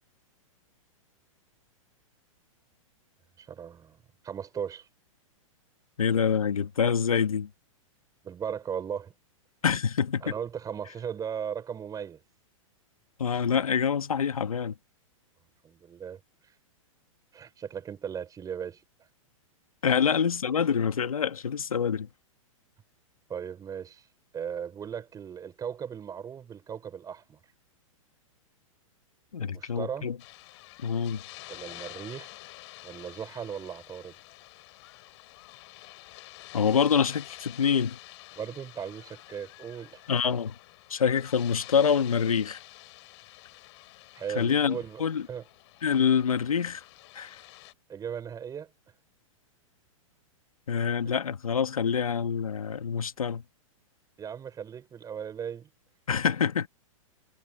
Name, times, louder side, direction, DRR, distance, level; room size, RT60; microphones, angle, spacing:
voice 1, 3.4-4.0 4.2-4.9 8.2-9.1 10.2-12.2 15.6-16.2 17.3-18.8 20.0-20.1 23.3-24.0 24.3-27.4 29.4-30.1 31.5-32.3 32.8-34.1 38.4-40.0 44.1-45.0 45.3-45.4 47.9-48.7 54.2-55.7, right 8 dB, 20° right, 5.7 m, -37 dB
voice 2, 6.0-7.5 9.6-10.3 13.2-14.7 19.8-22.1 29.3-30.2 30.8-31.2 36.5-38.0 40.1-40.5 40.9-42.6 44.3-45.3 45.8-46.8 47.1-47.4 50.7-53.4 56.1-56.7, left 7 dB, 85° left, 1.6 m, -26 dB
sound 1, 30.2-47.7, left 20 dB, 55° left, 2.9 m, -49 dB
hypercardioid pair, 120°, 18 cm